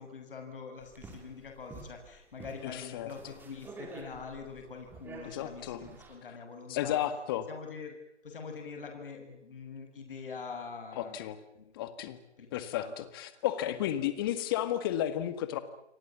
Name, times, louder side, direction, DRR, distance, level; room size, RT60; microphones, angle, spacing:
voice 1, 0.0-7.0 7.5-8.0 8.2-11.2 11.5-11.8 12.4-12.5 12.7-12.9, left 5 dB, 50° left, 5 dB, 6.5 m, -44 dB
sound 1, 0.8-6.2, right 3 dB, 5° right, 2.6 m, -49 dB
voice 2, 2.6-3.1 5.3-5.8 6.7-7.5 11.0-11.4 11.7-12.2 12.5-15.6, left 12 dB, 20° left, 12 dB, 1.8 m, -33 dB
29.5 x 22.5 x 7.3 m, 0.81 s
figure-of-eight pair, 155°, 35 cm